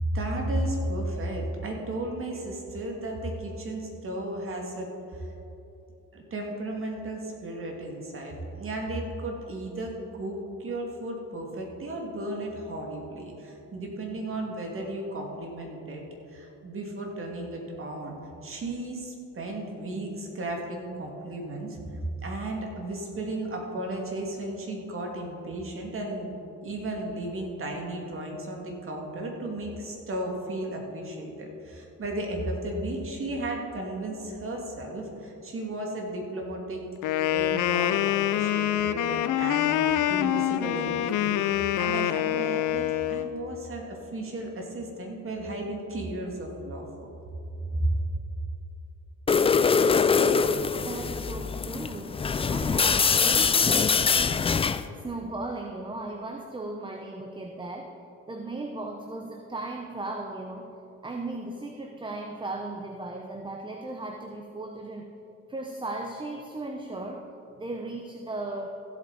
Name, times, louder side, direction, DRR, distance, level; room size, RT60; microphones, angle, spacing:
voice 1, 0.0-5.3 6.1-16.0 16.3-18.2 18.4-21.8 22.2-26.4 26.6-36.8 37.3-46.8 47.7-47.9, right 1 dB, 45° right, 0 dB, 2.3 m, -34 dB
Wind instrument woodwind instrument, 37.0-43.3, left 12 dB, 85° left, 0.5 m, -26 dB
sound 1, 49.3-54.9, left 5 dB, 20° left, 0.3 m, -23 dB
voice 2, 49.6-50.3 50.8-54.6 55.0-60.8 61.0-65.1 65.5-68.8, right 2 dB, 15° right, 3 dB, 0.8 m, -37 dB
15.5 x 8.1 x 4.1 m, 2.9 s
cardioid pair, 90°, 30 cm